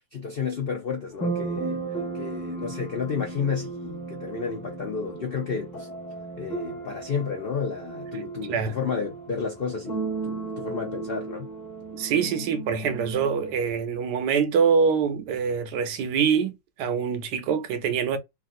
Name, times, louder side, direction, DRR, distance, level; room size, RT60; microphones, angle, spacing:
voice 1, 0.1-1.8 2.1-5.9 6.4-11.5, left 5 dB, 90° left, 0.5 m, -31 dB
sound 1, 1.1-13.7, right 3 dB, 30° left, 1.1 m, -35 dB
voice 2, 11.9-16.5 16.8-18.2, right 6 dB, 70° right, 1.2 m, -24 dB
3.3 x 2.4 x 2.5 m
omnidirectional pair, 2.0 m